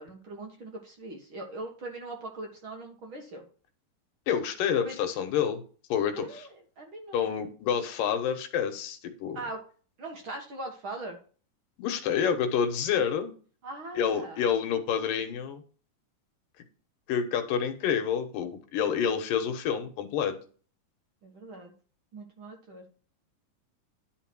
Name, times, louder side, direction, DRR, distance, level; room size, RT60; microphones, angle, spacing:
voice 1, 0.0-3.4 4.7-5.0 6.1-7.2 9.3-9.7 10.0-11.2 13.6-14.4 21.2-21.7 22.1-22.8, right 2 dB, 50° right, 1 dB, 1.8 m, -40 dB
voice 2, 4.3-5.6 5.9-6.3 7.1-9.4 11.8-13.3 14.0-15.6 17.1-20.4, left 8 dB, 90° left, 7 dB, 2.8 m, -28 dB
11.0 x 4.1 x 6.1 m, 0.40 s
omnidirectional pair, 3.7 m